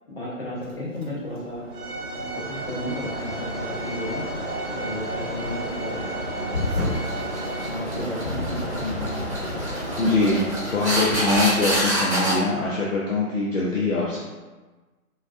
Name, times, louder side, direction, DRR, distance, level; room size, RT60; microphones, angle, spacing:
voice 1, 0.1-1.6 2.1-4.2 4.7-6.1 6.4-6.9 7.6-9.3, left 1 dB, 40° left, -6 dB, 1.0 m, -33 dB
Mechanisms, 0.6-13.0, equal, 45° right, 0.6 m, -34 dB
Bowed string instrument, 1.7-7.7, right 3 dB, 90° right, 0.7 m, -36 dB
sound 1, 6.5-12.3, equal, 5° left, 0.8 m, -26 dB
voice 2, 10.0-14.2, left 3 dB, 60° left, -5 dB, 0.6 m, -23 dB
3.9 x 2.2 x 2.5 m, 1.2 s
figure-of-eight pair, 150°, 45 cm